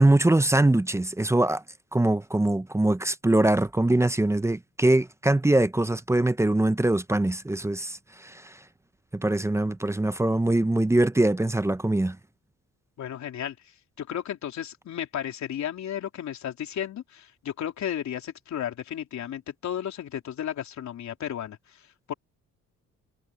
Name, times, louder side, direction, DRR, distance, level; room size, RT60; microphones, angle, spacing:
voice 1, 0.0-1.6 1.9-8.0 8.2-8.4 9.1-12.2, right 2 dB, 10° right, 0.7 m, -22 dB
voice 2, 13.0-13.6 14.0-22.1, left 10 dB, 65° left, 3.7 m, -34 dB
cardioid pair, 90°, 30 cm